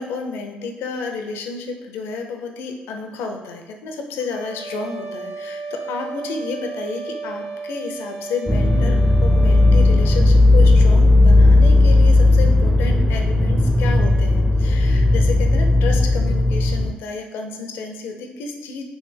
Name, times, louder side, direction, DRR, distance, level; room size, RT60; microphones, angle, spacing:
voice 1, 0.0-18.8, left 4 dB, 75° left, 4 dB, 0.5 m, -31 dB
sound 1, 4.2-10.2, right 3 dB, 65° right, 0.6 m, -34 dB
sound 2, 8.5-16.9, left 2 dB, ahead, 0.5 m, -15 dB
3.1 x 3.0 x 3.3 m, 1.1 s
hypercardioid pair, 55°, 4 cm